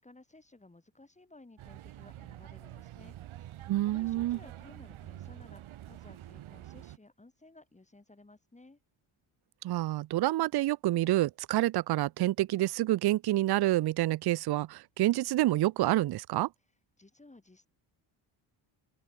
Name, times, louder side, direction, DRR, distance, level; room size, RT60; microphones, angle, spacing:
voice 1, 0.0-3.2 3.5-8.8 17.0-17.7, left 2 dB, 15° left, 5.2 m, -57 dB
sound 1, 1.6-7.0, right 13 dB, 75° right, 2.6 m, -47 dB
voice 2, 3.7-4.4 9.6-16.5, right 15 dB, 55° right, 0.6 m, -28 dB
open air
cardioid pair, 110°, 49 cm